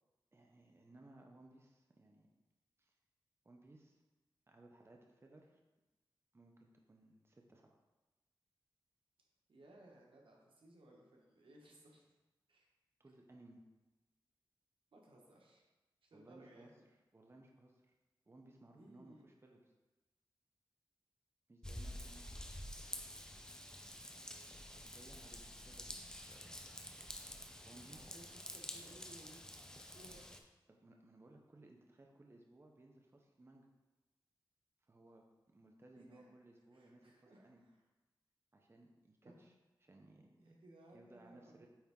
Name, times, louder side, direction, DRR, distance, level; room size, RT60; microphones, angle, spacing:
voice 1, 0.3-2.3 2.8-3.0 3.4-4.0 4.5-5.6 6.3-7.8 13.0-13.6 16.1-16.7 17.1-17.9 18.3-19.7 21.5-22.3 24.1-24.2 24.5-26.0 26.3-26.6 27.5-28.1 30.7-33.7 34.8-37.6 38.5-39.5 39.8-40.5 40.9-41.7, right 2 dB, 30° right, 1 dB, 0.7 m, -62 dB
voice 2, 9.5-12.0 12.5-12.7 14.9-15.6 16.0-16.7 18.7-19.3 27.9-29.5 29.9-30.3 36.0-36.3 36.7-37.8 39.3-39.4 40.4-41.7, right 1 dB, 80° right, -1 dB, 1.2 m, -61 dB
Raindrop / Vehicle horn car horn honking / Trickle dribble, 21.6-30.4, left 1 dB, 10° left, 0.6 m, -49 dB
8.8 x 3.5 x 3.6 m, 1.1 s
wide cardioid pair, 70°, 9 cm